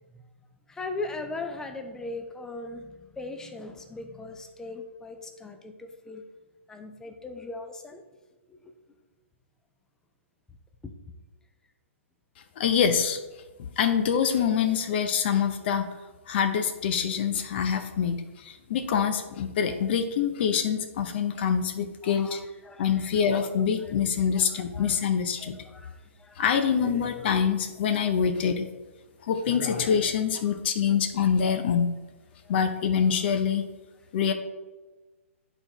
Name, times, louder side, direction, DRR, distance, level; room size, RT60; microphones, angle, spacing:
voice 1, 0.7-6.2 6.7-8.0 8.5-8.8 10.8-10.9 22.0-23.1 23.8-23.9 24.4-25.1 25.4-26.4 30.4-30.6 32.4-32.5, left 3 dB, 10° left, 6 dB, 0.6 m, -39 dB
voice 2, 12.6-13.2 13.8-15.9 16.3-22.4 22.8-25.5 26.4-28.6 29.2-31.9 32.5-33.7 34.1-34.3, left 7 dB, 50° left, 8 dB, 0.7 m, -25 dB
11.0 x 4.1 x 3.0 m, 1.2 s
hypercardioid pair, 130°, 7 cm